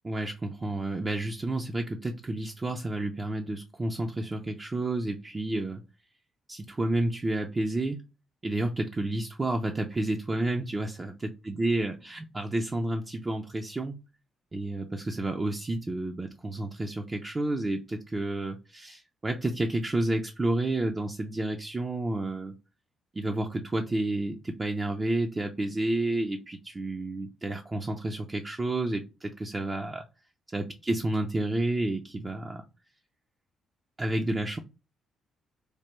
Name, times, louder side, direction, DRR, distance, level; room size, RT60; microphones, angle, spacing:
voice 1, 0.0-5.8 6.5-8.0 8.4-10.9 11.5-14.0 14.5-22.5 23.1-30.1 30.5-32.6 34.0-34.6, right 2 dB, 25° right, 0.4 m, -30 dB
3.2 x 2.2 x 2.9 m
cardioid pair, 90°, 0 cm